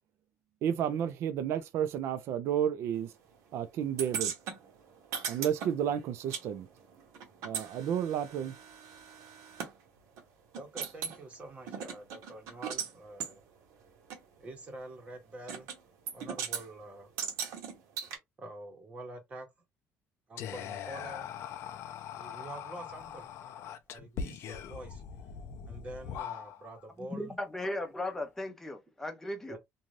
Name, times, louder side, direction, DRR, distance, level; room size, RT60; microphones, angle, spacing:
voice 1, 0.6-3.1 3.5-4.3 5.3-6.7 7.4-8.5, right 9 dB, 55° right, 0.4 m, -31 dB
sound 1, 4.0-6.5 6.7-9.7 10.2-10.3 10.5-11.2 11.7-12.9 13.2-13.3 14.1-14.2 15.5-15.8 16.1-16.6 17.2-18.2, right 7 dB, 80° right, 1.0 m, -38 dB
voice 2, 10.5-13.4 14.4-15.7 16.1-17.1 18.4-19.5 20.3-21.3 22.2-25.0 25.7-27.3 29.5-29.6, right 2 dB, 25° right, 0.9 m, -46 dB
Whispering, 20.4-26.8, left 8 dB, 55° left, 0.4 m, -41 dB
voice 3, 27.1-29.6, left 1 dB, 5° left, 0.6 m, -37 dB
2.6 x 2.3 x 3.1 m
cardioid pair, 165°, 5 cm